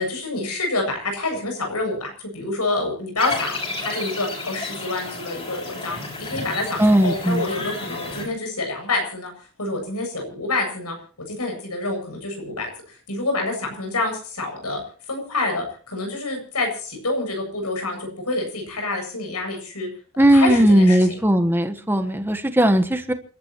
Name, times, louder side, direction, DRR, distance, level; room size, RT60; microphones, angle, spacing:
voice 1, 0.0-9.3 9.6-11.0 11.3-12.7 13.1-14.8 15.1-19.9 20.3-21.1, left 2 dB, 85° left, 3 dB, 7.7 m, -27 dB
sound 1, 3.2-8.2, left 3 dB, 25° left, 6.5 m, -32 dB
voice 2, 6.8-7.5 20.2-23.1, right 1 dB, 10° right, 8 dB, 1.3 m, -17 dB
28.5 x 12.0 x 3.1 m, 0.41 s
head